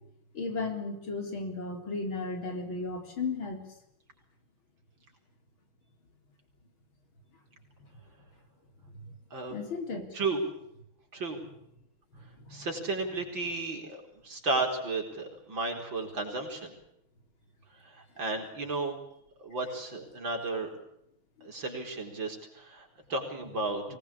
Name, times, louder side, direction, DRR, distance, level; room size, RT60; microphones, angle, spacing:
voice 1, 0.3-3.6 9.5-10.1 12.4-12.7 21.4-21.5, left 3 dB, 75° left, 5 dB, 4.7 m, -35 dB
voice 2, 12.5-16.7 17.8-19.0 19.4-20.7 21.4-23.8, right 3 dB, 65° right, 3 dB, 5.3 m, -33 dB
24.0 x 20.0 x 8.7 m, 0.78 s
omnidirectional pair, 2.2 m